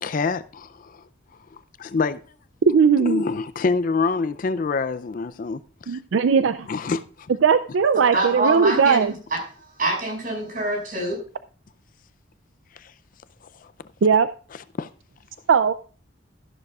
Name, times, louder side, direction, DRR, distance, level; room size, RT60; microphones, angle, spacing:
voice 1, 0.0-1.0 1.5-2.2 3.0-5.6 5.9-6.0 6.7-7.0 12.8-12.9 13.6-13.7 14.8-14.9, left 4 dB, 45° left, 0.4 m, -26 dB
voice 2, 2.7-3.2 5.9-6.7 7.4-9.1 14.0-14.3 15.5-15.7, right 6 dB, 75° right, 0.4 m, -18 dB
voice 3, 8.1-11.2, right 2 dB, 45° right, 5.5 m, -26 dB
13.0 x 11.5 x 2.4 m
head